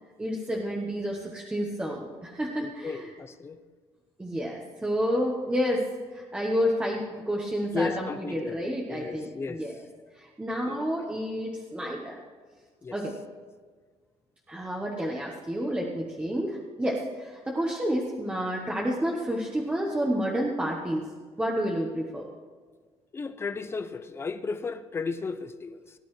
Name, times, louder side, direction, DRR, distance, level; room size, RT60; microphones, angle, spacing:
voice 1, 0.2-3.1 4.2-9.8 10.1-12.2 12.9-13.2 14.5-21.1 21.4-22.3, equal, 10° right, -2 dB, 1.1 m, -30 dB
voice 2, 2.6-3.6 7.7-9.6 10.7-10.9 12.8-13.0 23.1-25.9, left 4 dB, 20° left, 10 dB, 0.7 m, -34 dB
18.5 x 11.0 x 3.2 m, 1.5 s
cardioid pair, 165°, 11 cm